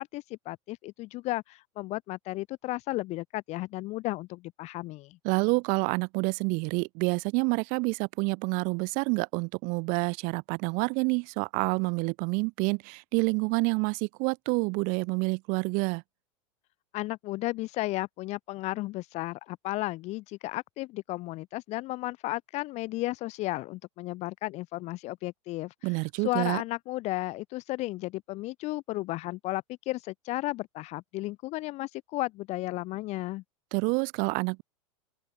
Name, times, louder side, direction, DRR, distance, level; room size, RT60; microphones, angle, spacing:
voice 1, 0.0-5.2 16.9-25.7 26.2-33.4, left 19 dB, 40° left, 0.6 m, -34 dB
voice 2, 5.2-16.0 25.8-26.6 33.7-34.6, right 31 dB, 55° right, 2.6 m, -28 dB
open air
hypercardioid pair, 100°, 17 cm